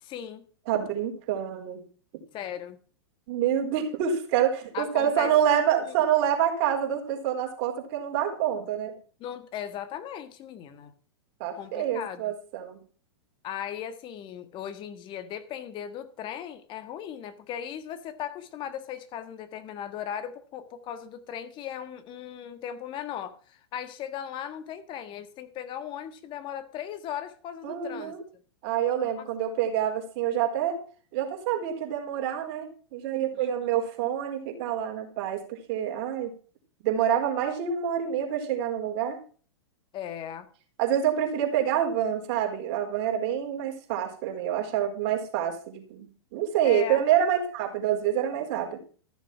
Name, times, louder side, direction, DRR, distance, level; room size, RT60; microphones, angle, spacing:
voice 1, 0.0-0.4 2.3-2.8 4.7-5.3 9.2-10.9 11.6-12.3 13.4-28.1 29.2-29.3 33.3-33.5 39.9-40.5 46.6-47.0, left 9 dB, 35° left, 1.5 m, -37 dB
voice 2, 0.7-1.8 3.3-8.9 11.4-12.8 27.6-28.2 28.6-30.8 31.1-36.3 36.8-39.2 40.8-48.8, right 9 dB, 50° right, 4.2 m, -27 dB
14.0 x 7.1 x 6.0 m
hypercardioid pair, 110°, 14 cm